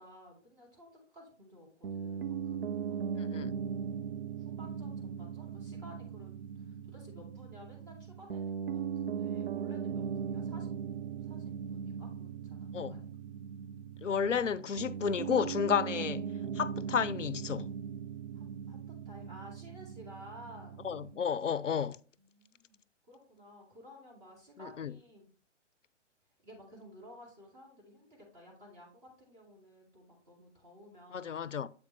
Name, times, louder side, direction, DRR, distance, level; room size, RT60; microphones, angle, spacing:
voice 1, 0.0-3.6 4.4-10.7 11.2-13.1 18.3-18.8 19.0-20.8 22.2-25.3 26.4-31.5, equal, 25° right, 2.4 m, -54 dB
Piano, 1.8-21.2, right 7 dB, 50° right, 0.4 m, -39 dB
voice 2, 14.0-17.7 20.8-22.0 24.8-24.9 31.1-31.7, left 7 dB, 85° left, 0.5 m, -32 dB
8.1 x 5.0 x 3.2 m
figure-of-eight pair, 130°, 36 cm